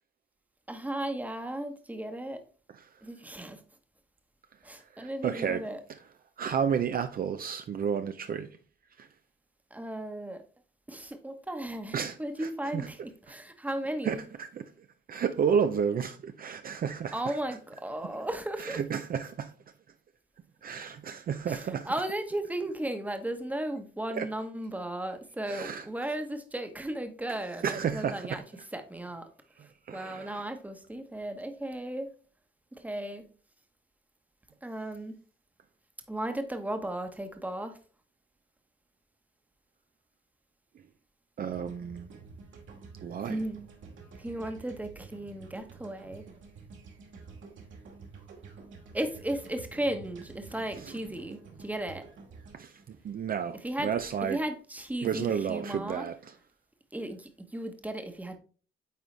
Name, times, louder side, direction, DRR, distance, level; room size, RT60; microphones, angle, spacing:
voice 1, 0.7-2.4 3.0-3.6 4.6-5.8 9.7-10.4 10.9-14.2 17.1-18.8 21.5-28.4 28.7-29.3 29.9-32.1 32.7-33.3 34.6-35.2 36.1-37.8 43.3-43.7 44.2-46.3 48.9-52.0 53.6-53.9 54.3-56.1 56.9-58.4, right 1 dB, 10° right, 1.1 m, -35 dB
voice 2, 5.0-5.6 6.4-8.5 9.0-9.1 11.9-12.9 14.0-14.7 15.1-17.4 18.6-19.5 20.6-21.9 24.1-24.3 25.5-25.8 27.6-28.4 29.9-30.4 41.4-42.1 43.0-43.4 50.8-50.9 52.5-54.4 55.0-56.3, right 7 dB, 45° right, 0.5 m, -31 dB
sound 1, 41.5-53.7, right 4 dB, 75° right, 2.3 m, -49 dB
9.2 x 3.9 x 3.3 m
cardioid pair, 90°, 20 cm